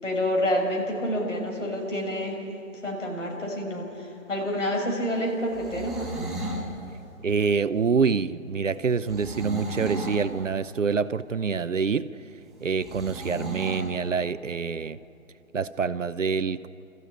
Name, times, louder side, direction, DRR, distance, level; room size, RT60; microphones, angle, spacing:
voice 1, 0.0-2.4 2.8-6.1, equal, 65° left, 0 dB, 6.2 m, -28 dB
sound 1, 5.4-6.7 9.0-10.3 12.8-13.9, right 1 dB, ahead, 4.4 m, -34 dB
voice 2, 7.2-12.1 12.6-15.0 15.5-16.7, right 5 dB, 65° right, 14 dB, 0.8 m, -26 dB
26.5 x 14.5 x 10.0 m, 2.9 s
figure-of-eight pair, 140°, 41 cm